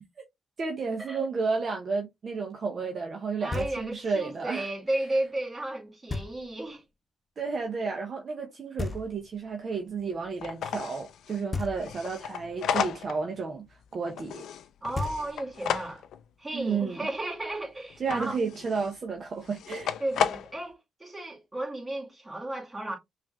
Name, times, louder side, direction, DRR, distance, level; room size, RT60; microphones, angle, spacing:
voice 1, 0.6-4.7 7.4-13.6 13.9-14.5 16.5-17.1 18.0-19.9, right 4 dB, 50° right, 0.7 m, -32 dB
voice 2, 3.4-6.8 14.8-16.0 16.4-18.3 20.0-23.0, right 1 dB, 25° right, 2.0 m, -33 dB
Knock, 3.5-4.2 6.1-6.7 8.8-9.6 11.5-12.3 14.6-14.7 14.9-15.7, left 3 dB, 30° left, 0.9 m, -36 dB
sound 1, 9.2-9.3 9.9-10.0 10.4-13.4 13.7-16.3 17.9-19.0 19.4-20.6, left 8 dB, 70° left, 0.3 m, -33 dB
5.7 x 2.5 x 2.2 m
supercardioid pair, 50°, 0 cm